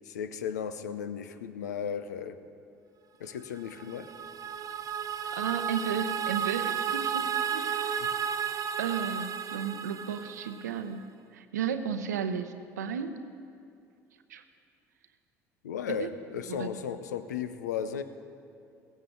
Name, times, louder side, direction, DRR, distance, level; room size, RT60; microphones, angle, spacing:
voice 1, 0.1-2.4 3.2-4.1 15.6-18.0, left 7 dB, 80° left, 11 dB, 0.7 m, -35 dB
sound 1, 3.6-10.8, right 7 dB, 40° right, 0.7 m, -33 dB
voice 2, 5.3-8.0 8.8-13.3 14.3-14.4 15.9-16.1 16.5-16.9, right 7 dB, 85° right, 9 dB, 0.8 m, -34 dB
16.5 x 15.5 x 3.9 m, 2.4 s
hypercardioid pair, 60°, 9 cm